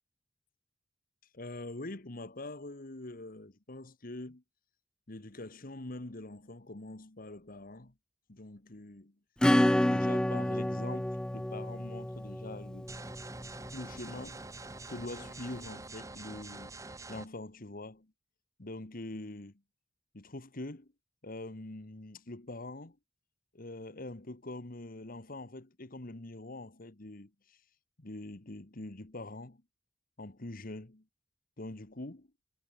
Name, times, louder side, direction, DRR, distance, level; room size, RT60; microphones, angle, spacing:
voice 1, 1.3-4.4 5.1-7.9 8.3-9.1 9.9-12.9 13.7-14.4 14.9-16.8 17.1-18.1 18.6-19.5 20.1-20.9 21.2-23.0 23.5-27.6 28.0-29.6 30.2-31.0 31.6-32.3, left 2 dB, 50° left, 1.6 m, -44 dB
Acoustic guitar / Strum, 9.4-13.7, left 1 dB, 5° left, 0.3 m, -29 dB
sound 1, 12.9-17.3, right 3 dB, 20° right, 1.2 m, -46 dB
head